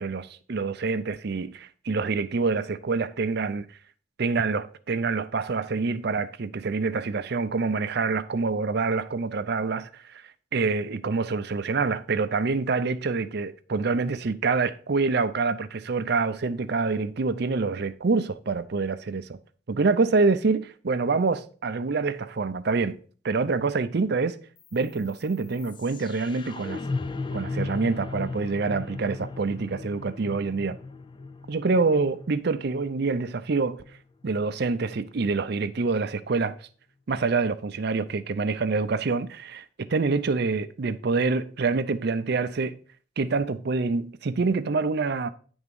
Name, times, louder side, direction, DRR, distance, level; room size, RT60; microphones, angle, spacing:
voice 1, 0.0-3.7 4.2-10.2 10.5-19.4 19.7-23.0 23.2-24.4 24.7-26.8 27.3-30.8 31.5-33.8 34.2-36.7 37.1-42.8 43.2-45.3, right 4 dB, 55° right, 0.5 m, -26 dB
sound 1, 24.6-34.6, left 3 dB, 25° left, 0.3 m, -37 dB
9.6 x 3.6 x 5.2 m
head